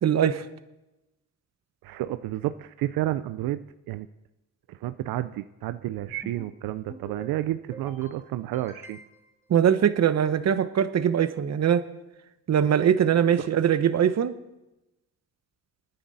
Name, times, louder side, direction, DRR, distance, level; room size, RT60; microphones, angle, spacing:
voice 1, 0.0-0.4 9.5-11.9 12.5-14.3, right 9 dB, 50° right, 12 dB, 1.0 m, -22 dB
voice 2, 1.8-4.1 4.7-9.0 13.4-13.5, right 14 dB, 85° right, 12 dB, 0.6 m, -31 dB
sound 1, 6.1-6.5 6.9-7.3 7.7-8.1 8.5-9.3, right 1 dB, 10° right, 2.6 m, -46 dB
27.0 x 10.0 x 4.1 m, 0.96 s
cardioid pair, 85°, 34 cm